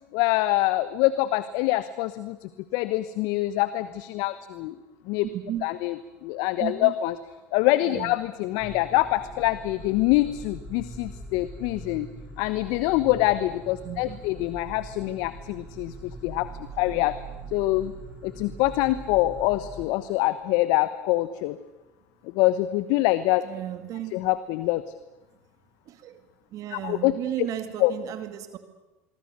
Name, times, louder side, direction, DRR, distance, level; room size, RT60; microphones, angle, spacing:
voice 1, 0.1-2.4 2.7-4.7 5.1-5.2 5.6-5.9 6.2-7.1 7.5-12.1 12.4-16.5 16.8-17.1 17.5-17.9 18.2-21.6 22.3-23.4 24.1-24.8 26.7-27.1 27.8-27.9, left 17 dB, 65° left, 14 dB, 1.0 m, -25 dB
voice 2, 5.3-5.7 6.6-6.9 7.9-8.1 13.8-14.3 23.4-24.2 25.9-26.2 26.5-28.6, right 12 dB, 50° right, 9 dB, 2.1 m, -34 dB
sound 1, 8.6-19.9, right 2 dB, 15° right, 5.5 m, -42 dB
25.5 x 23.5 x 6.7 m, 1.1 s
hypercardioid pair, 75°, 7 cm